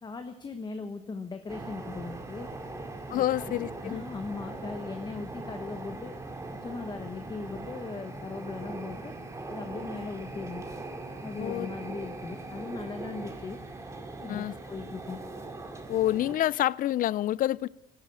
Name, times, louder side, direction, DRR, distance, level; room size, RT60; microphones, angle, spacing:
voice 1, 0.0-2.5 3.1-6.1 6.6-9.1 9.5-10.6 11.2-13.6 14.2-15.2, left 4 dB, 25° left, 1.2 m, -39 dB
sound 1, 1.5-16.3, right 2 dB, 15° right, 2.3 m, -40 dB
voice 2, 3.1-4.0 11.4-11.7 14.3-14.5 15.9-17.7, left 13 dB, 55° left, 0.5 m, -27 dB
16.0 x 12.5 x 7.0 m
cardioid pair, 110°, 17 cm